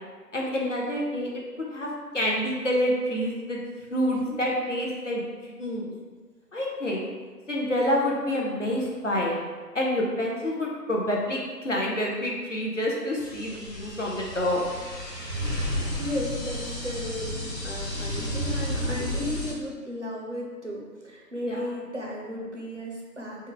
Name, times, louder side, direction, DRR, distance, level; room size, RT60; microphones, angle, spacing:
voice 1, 0.3-1.4 1.7-1.9 2.1-3.6 3.9-5.9 6.5-7.1 7.5-9.4 9.7-14.6 21.4-21.6, left 1 dB, 50° left, -2 dB, 0.5 m, -27 dB
sound 1, 13.2-19.5, equal, 85° left, 1.5 m, -32 dB
voice 2, 16.0-23.5, left 1 dB, 50° right, -3 dB, 0.5 m, -35 dB
3.1 x 2.2 x 3.7 m, 1.4 s
figure-of-eight pair, 175°, 49 cm